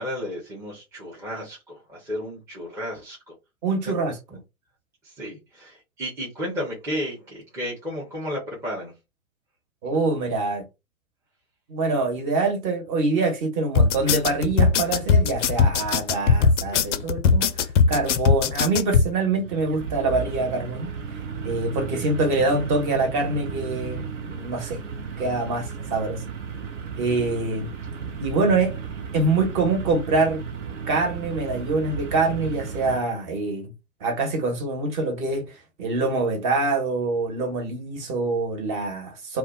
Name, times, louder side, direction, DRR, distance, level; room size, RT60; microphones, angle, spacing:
voice 1, 0.0-3.3 5.0-8.9, equal, 5° right, 0.6 m, -33 dB
voice 2, 3.6-4.1 9.8-10.6 11.7-17.5 17.9-20.9 21.4-24.8 25.2-26.2 27.0-27.7 28.2-28.7 29.1-30.4 30.9-33.7 34.0-35.4 35.8-39.4, right 3 dB, 35° right, 1.2 m, -25 dB
sound 1, 13.7-19.1, left 5 dB, 60° left, 0.5 m, -19 dB
sound 2, 19.0-33.0, right 6 dB, 60° right, 0.8 m, -34 dB
2.3 x 2.3 x 3.7 m
figure-of-eight pair, 115°, 42 cm